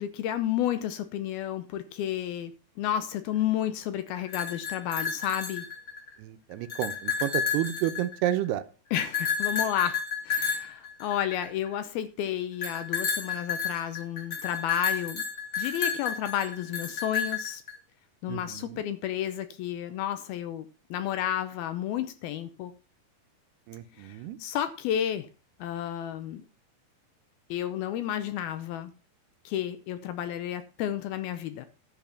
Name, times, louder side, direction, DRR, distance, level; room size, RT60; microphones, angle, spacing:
voice 1, 0.0-2.5 2.8-5.7 8.9-10.0 10.2-15.2 15.6-17.6 18.2-22.7 24.0-25.3 25.6-26.4 27.5-28.9 29.5-31.7, left 11 dB, 75° left, 11 dB, 2.4 m, -31 dB
sound 1, 4.2-6.1 6.5-8.5 9.0-11.7 12.6-17.7, left 6 dB, 35° left, 2.5 m, -31 dB
voice 2, 6.2-8.6 18.3-18.9 23.7-24.4, right 13 dB, 80° right, 10 dB, 2.7 m, -31 dB
10.5 x 7.2 x 5.7 m, 0.35 s
omnidirectional pair, 4.8 m